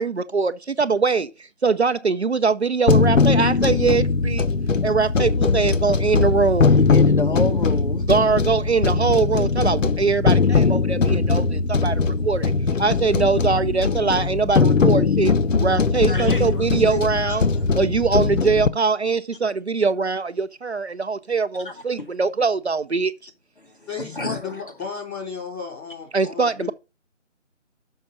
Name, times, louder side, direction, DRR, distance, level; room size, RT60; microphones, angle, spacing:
voice 1, 0.0-4.5 4.8-6.7 8.1-12.5 12.8-15.3 15.6-17.4 17.7-23.1 26.1-26.7, right 4 dB, 60° right, 0.6 m, -22 dB
sound 1, 2.9-18.7, left 4 dB, 80° left, 0.9 m, -20 dB
voice 2, 6.9-8.0 16.1-16.4 17.3-17.4 21.6-21.7 24.0-24.6, left 2 dB, 45° left, 1.2 m, -28 dB
voice 3, 16.2-17.0 23.9-26.7, left 6 dB, 5° left, 2.5 m, -34 dB
6.5 x 5.5 x 5.6 m
figure-of-eight pair, 175°, 38 cm